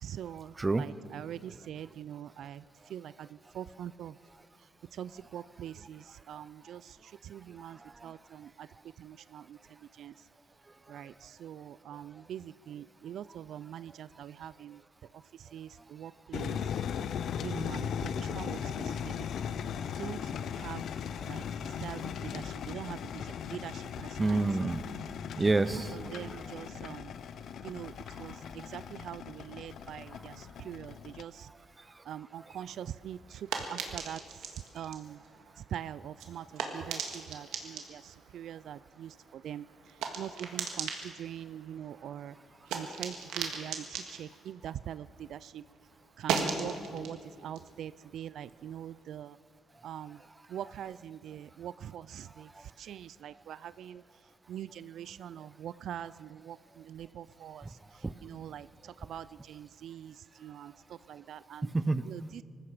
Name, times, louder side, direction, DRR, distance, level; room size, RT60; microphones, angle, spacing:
voice 1, 0.0-2.6 2.9-3.3 3.5-4.1 4.9-8.7 9.0-9.6 10.0-10.1 10.9-14.8 15.5-16.6 17.4-19.1 20.0-20.2 20.5-20.8 21.3-23.9 24.2-24.4 25.7-27.1 27.6-27.9 28.2-31.5 32.1-34.2 34.7-35.2 35.7-39.6 40.2-42.4 42.7-45.6 46.2-49.4 49.8-50.2 50.5-52.5 52.8-54.0 54.5-57.7 58.2-60.1 60.4-61.7 62.0-62.4, right 10 dB, 70° right, 17 dB, 0.3 m, -43 dB
sound 1, 16.3-31.2, left 8 dB, 65° left, 0.6 m, -38 dB
voice 2, 24.2-24.8 25.4-26.0 61.7-62.1, right 3 dB, 20° right, 16 dB, 0.6 m, -27 dB
sound 2, 32.7-45.4 45.7-49.0, right 6 dB, 90° right, 1.7 m, -40 dB
19.5 x 15.0 x 4.9 m, 2.3 s
cardioid pair, 90°, 0 cm